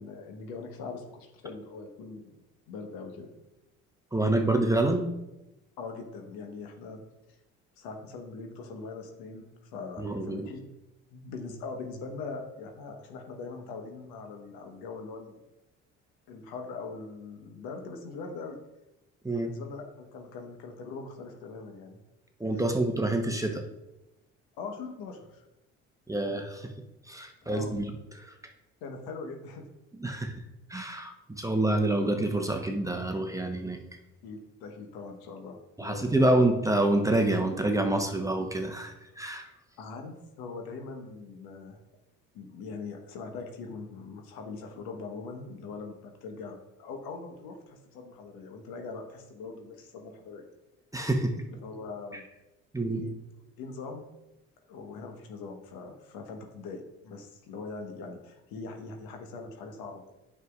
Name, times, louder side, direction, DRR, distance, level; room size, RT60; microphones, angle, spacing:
voice 1, 0.0-3.3 5.8-7.0 7.8-10.6 11.1-15.4 16.3-18.6 19.3-22.0 24.6-25.4 27.4-27.8 28.8-29.7 34.2-36.3 39.8-41.8 42.3-50.5 51.5-52.2 52.9-53.1 53.6-54.0 54.7-60.0, left 4 dB, 70° left, 3 dB, 1.2 m, -41 dB
voice 2, 4.1-5.1 10.0-10.5 19.2-19.5 22.4-23.6 26.1-26.7 27.1-27.9 28.2-28.3 30.0-30.4 30.7-33.8 35.8-39.5 50.9-51.5 52.7-53.0, right 2 dB, 10° right, 4 dB, 0.9 m, -27 dB
9.3 x 5.9 x 2.4 m, 0.94 s
hypercardioid pair, 55°, 37 cm